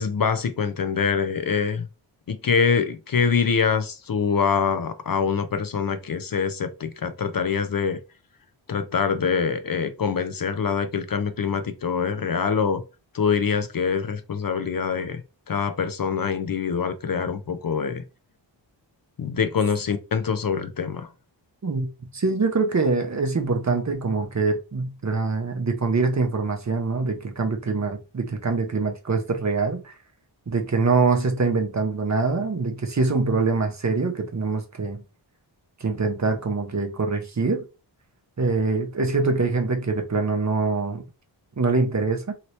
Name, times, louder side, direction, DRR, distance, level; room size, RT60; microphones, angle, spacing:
voice 1, 0.0-1.9 2.3-8.0 8.7-12.8 13.1-15.2 15.5-18.0 19.2-21.1, left 6 dB, 50° left, 0.5 m, -24 dB
voice 2, 22.1-29.9 30.5-35.0 35.8-37.6 38.4-41.0 41.6-42.3, right 4 dB, 40° right, 0.7 m, -24 dB
2.9 x 2.8 x 3.1 m
wide cardioid pair, 65°, 46 cm